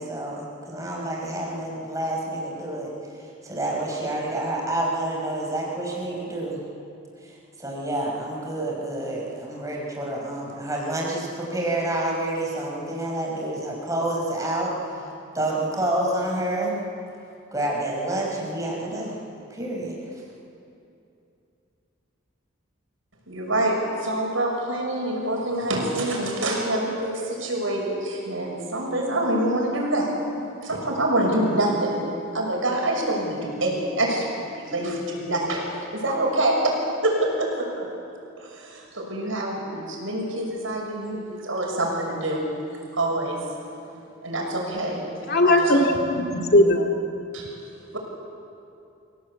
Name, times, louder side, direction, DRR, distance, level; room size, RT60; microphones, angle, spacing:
voice 1, 0.0-2.9 3.2-6.6 7.2-7.3 7.6-15.1 15.3-16.8 17.5-19.1 19.5-20.2, right 1 dB, 15° right, -2 dB, 4.8 m, -28 dB
voice 2, 23.3-30.1 30.6-32.1 32.3-35.7 35.9-36.7 37.0-37.9 38.4-42.4 42.9-43.4 44.2-45.0 45.4-45.8 47.3-47.5 47.9-48.0, right 1 dB, 80° right, -1 dB, 6.2 m, -26 dB
voice 3, 45.3-46.9, left 1 dB, 50° left, 2 dB, 2.3 m, -18 dB
26.0 x 17.0 x 8.4 m, 2.7 s
head